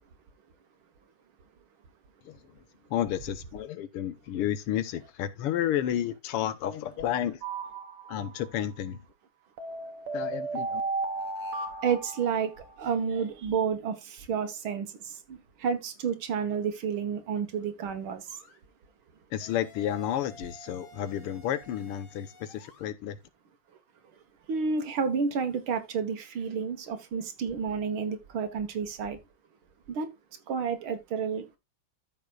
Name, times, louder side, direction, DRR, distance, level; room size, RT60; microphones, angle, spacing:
voice 1, 2.9-7.4 8.1-9.0 10.1-10.8 19.3-23.2, left 11 dB, 85° left, 1.8 m, -31 dB
sound 1, 7.4-8.5 9.6-12.8, right 3 dB, 85° right, 2.4 m, -35 dB
voice 2, 11.8-18.3 24.5-29.2 29.9-30.1 30.5-31.6, right 6 dB, 70° right, 2.0 m, -30 dB
sound 2, 18.3-18.6 19.4-22.9, equal, 65° left, 3.0 m, -53 dB
13.5 x 5.8 x 2.4 m
omnidirectional pair, 2.4 m